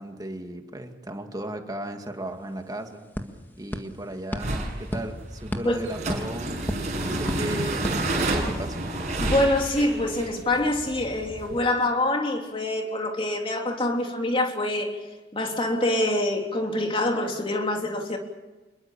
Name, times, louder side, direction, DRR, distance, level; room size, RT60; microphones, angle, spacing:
voice 1, 0.0-3.1 3.6-6.8 7.0-8.9, right 1 dB, 20° right, 2.1 m, -36 dB
sound 1, 2.1-2.2 2.4-8.8, equal, 10° left, 1.9 m, -36 dB
sound 2, 4.4-11.6, right 2 dB, 40° right, 6.3 m, -30 dB
voice 2, 9.2-15.0 15.3-18.2, left 1 dB, 30° left, 3.3 m, -25 dB
26.0 x 22.0 x 7.2 m
head